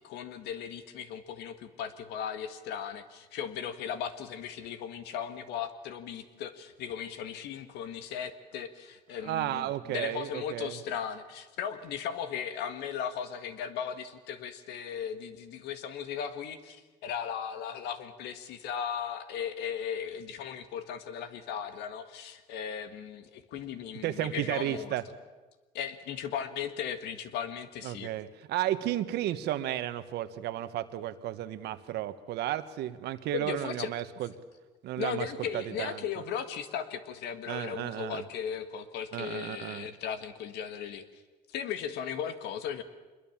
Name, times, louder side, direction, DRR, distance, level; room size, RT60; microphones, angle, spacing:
voice 1, 0.0-25.0 25.7-28.1 33.3-33.9 35.0-41.1 41.5-42.8, left 8 dB, 85° left, 9 dB, 1.8 m, -37 dB
voice 2, 9.2-10.7 24.0-25.0 27.8-34.3 34.8-35.3 35.5-36.0 37.5-38.2 39.1-39.9, right 13 dB, 80° right, 11 dB, 1.3 m, -33 dB
25.0 x 22.0 x 7.4 m, 1.2 s
cardioid pair, 110°, 17 cm